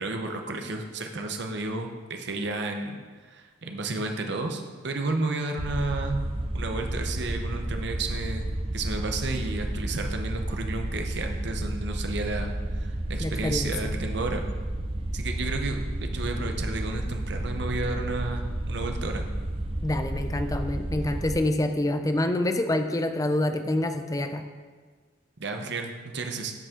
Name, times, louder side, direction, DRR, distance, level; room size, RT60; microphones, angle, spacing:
voice 1, 0.0-3.0 3.3-6.2 6.5-14.4 15.1-19.2 25.4-26.5, right 3 dB, 60° right, 4 dB, 0.8 m, -32 dB
sound 1, 5.6-21.4, right 1 dB, 30° right, 0.6 m, -31 dB
voice 2, 13.2-13.7 19.8-24.4, left 1 dB, 20° left, 7 dB, 0.5 m, -26 dB
12.0 x 5.4 x 3.7 m, 1.5 s
head